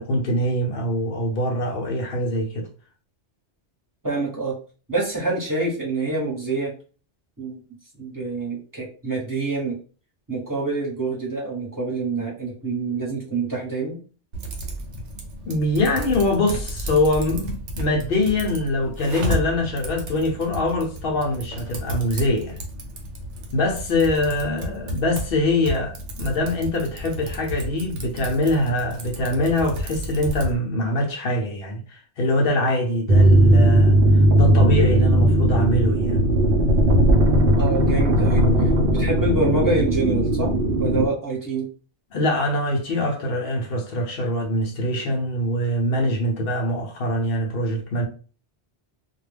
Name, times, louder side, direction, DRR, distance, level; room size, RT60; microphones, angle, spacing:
voice 1, 0.0-2.7 15.5-22.6 23.5-34.0 34.4-36.2 42.1-48.1, left 1 dB, 60° left, 0.8 m, -23 dB
voice 2, 4.0-4.5 4.9-6.7 7.4-7.6 8.0-9.8 10.3-14.0 37.5-40.5 40.8-41.7, right 3 dB, 20° right, 1.0 m, -26 dB
Typing, 14.3-30.6, equal, 85° right, 1.0 m, -33 dB
sound 1, 33.1-41.1, right 1 dB, 60° right, 0.7 m, -17 dB
2.2 x 2.2 x 3.3 m
omnidirectional pair, 1.2 m